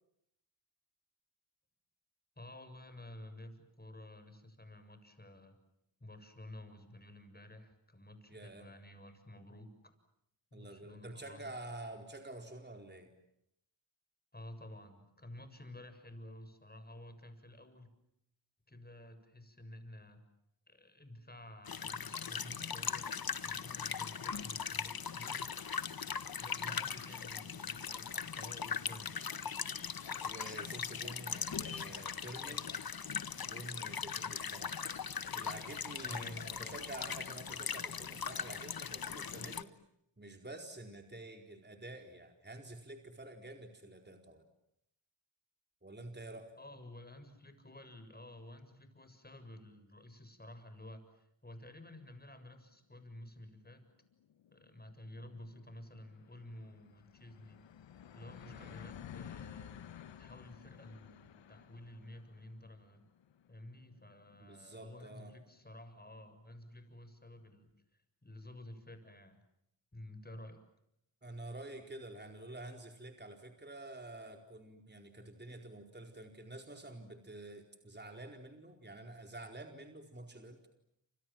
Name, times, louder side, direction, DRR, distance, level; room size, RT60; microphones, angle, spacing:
voice 1, 2.4-5.6 6.0-10.0 10.5-11.5 14.3-17.9 18.7-20.2 20.7-23.1 23.4-25.5 26.4-29.2 36.0-36.7 46.6-53.8 54.5-57.6 58.1-59.8 60.2-63.0 63.5-69.4 69.9-70.6, left 1 dB, 20° left, 9 dB, 7.4 m, -52 dB
voice 2, 8.3-8.7 10.5-13.1 26.5-26.8 30.2-32.7 33.4-34.8 35.3-39.7 40.2-44.4 45.8-46.5 58.4-58.8 64.4-65.3 71.2-80.7, right 2 dB, 25° right, 4 dB, 4.5 m, -49 dB
sound 1, 21.7-39.6, left 6 dB, 55° left, 1.5 m, -40 dB
sound 2, 53.3-53.4 53.7-53.8 54.1-65.5, left 9 dB, 85° left, 1.3 m, -54 dB
29.0 x 26.5 x 7.7 m, 0.78 s
cardioid pair, 45°, 43 cm